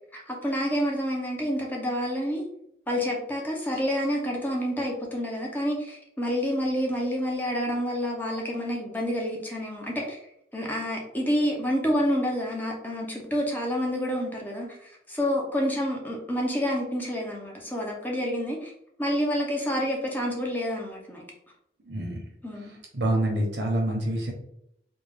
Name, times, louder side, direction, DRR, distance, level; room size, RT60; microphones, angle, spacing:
voice 1, 0.1-2.4 2.9-10.2 10.5-18.7 19.0-21.2 22.4-22.7, equal, 10° left, -1 dB, 0.6 m, -28 dB
voice 2, 21.8-22.2 22.9-24.3, right 1 dB, 75° right, 1 dB, 0.9 m, -26 dB
3.5 x 2.3 x 3.3 m, 0.75 s
head